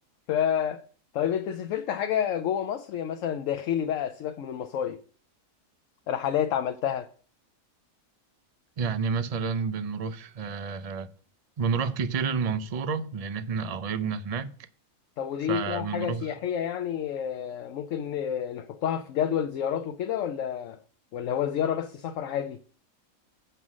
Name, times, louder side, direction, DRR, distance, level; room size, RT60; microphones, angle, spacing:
voice 1, 0.3-0.8 1.1-5.0 6.1-7.1 15.2-20.8 21.1-22.6, left 9 dB, 70° left, 0.9 m, -29 dB
voice 2, 8.8-11.1 11.6-14.5 15.5-16.3, right 5 dB, 50° right, 0.4 m, -30 dB
8.0 x 5.5 x 6.1 m
omnidirectional pair, 1.4 m